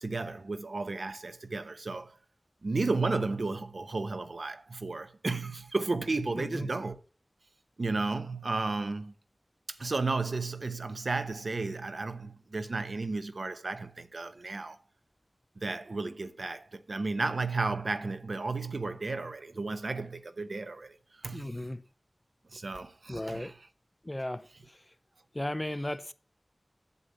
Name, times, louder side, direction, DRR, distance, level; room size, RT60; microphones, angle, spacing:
voice 1, 0.0-2.2 2.6-7.0 7.8-9.1 9.7-14.8 15.6-21.0 21.2-21.5 22.5-23.5, right 3 dB, 75° right, 1.0 m, -33 dB
voice 2, 6.3-6.7 21.3-21.8 23.1-23.5 24.0-24.9 25.3-26.1, left 1 dB, 25° left, 0.6 m, -36 dB
8.2 x 7.0 x 7.0 m
wide cardioid pair, 65°, 0 cm